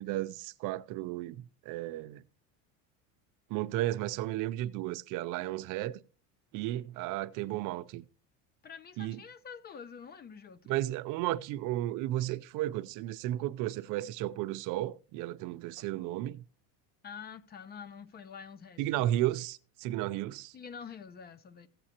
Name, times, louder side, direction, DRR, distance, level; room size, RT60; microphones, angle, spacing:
voice 1, 0.0-2.2 3.5-6.0 6.5-8.1 9.0-9.2 10.7-16.4 18.8-20.5, right 15 dB, 60° right, 0.6 m, -34 dB
voice 2, 8.6-10.8 15.8-15.9 17.0-19.1 20.5-21.7, left 6 dB, 30° left, 0.6 m, -47 dB
15.5 x 7.7 x 2.9 m
cardioid pair, 140°, 35 cm